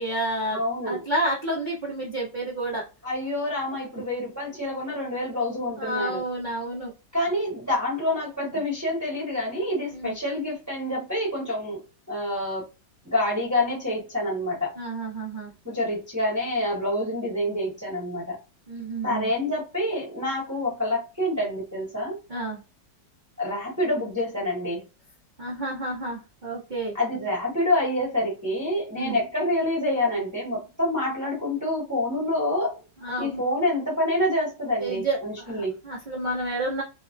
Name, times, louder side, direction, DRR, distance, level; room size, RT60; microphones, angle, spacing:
voice 1, 0.0-2.8 5.8-6.9 9.9-10.1 14.8-15.5 18.7-19.3 22.3-22.6 25.4-26.9 28.9-29.2 33.0-33.4 34.8-35.2 35.4-36.8, right 1 dB, 70° right, 0.4 m, -30 dB
voice 2, 0.5-1.0 3.0-6.2 7.1-12.7 13.0-14.8 15.6-18.4 19.0-22.2 23.4-24.8 26.9-32.8 33.2-35.8, left 1 dB, 15° right, 0.7 m, -27 dB
3.0 x 2.1 x 2.5 m
omnidirectional pair, 2.0 m